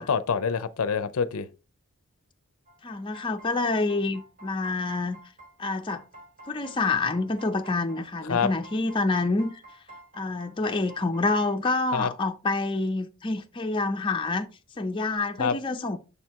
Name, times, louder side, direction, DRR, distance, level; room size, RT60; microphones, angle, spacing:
voice 1, 0.0-1.5 8.3-8.5 11.9-12.1 15.4-15.6, left 6 dB, 75° left, 0.5 m, -26 dB
sound 1, 2.7-11.8, right 1 dB, 40° right, 2.3 m, -49 dB
voice 2, 2.8-5.2 5.6-6.0 6.5-9.6 10.1-14.5 14.8-16.0, left 3 dB, 20° left, 0.5 m, -27 dB
6.9 x 4.5 x 3.5 m
head